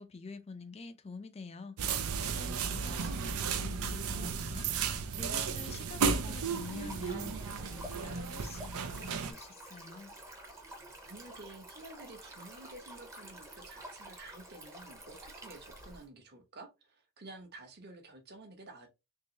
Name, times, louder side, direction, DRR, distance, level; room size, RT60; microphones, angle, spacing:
voice 1, 0.0-1.8 2.3-10.1, left 4 dB, 30° left, 0.5 m, -47 dB
sound 1, 1.8-9.3, right 5 dB, 75° right, 0.6 m, -34 dB
voice 2, 2.7-3.3 11.0-18.9, right 2 dB, 45° right, 1.0 m, -51 dB
Stream, 6.3-16.1, right 1 dB, 15° right, 0.8 m, -50 dB
3.8 x 3.0 x 2.9 m
head